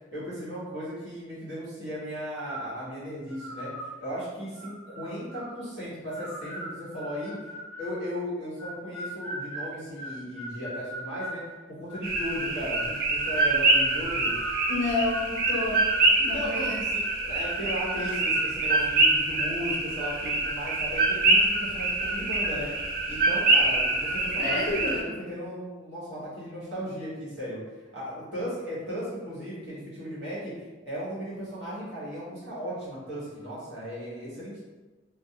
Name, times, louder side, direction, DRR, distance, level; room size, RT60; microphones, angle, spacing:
voice 1, 0.1-3.7 4.0-7.4 7.8-11.4 11.7-14.3 16.2-22.7 23.1-27.6 27.9-34.6, equal, 70° right, -9 dB, 1.1 m, -36 dB
sound 1, 2.3-2.8 3.3-3.9 4.5-5.5 6.1-8.0 8.6-11.4 11.9-12.5 12.9-14.9 15.4-15.7 15.9-16.4, right 2 dB, 10° left, 0.8 m, -37 dB
sound 2, 12.0-25.0, right 2 dB, 50° right, 0.4 m, -25 dB
voice 2, 14.7-15.8 16.2-16.8 24.4-25.0, left 2 dB, 55° left, -5 dB, 0.4 m, -29 dB
2.3 x 2.2 x 2.8 m, 1.3 s
head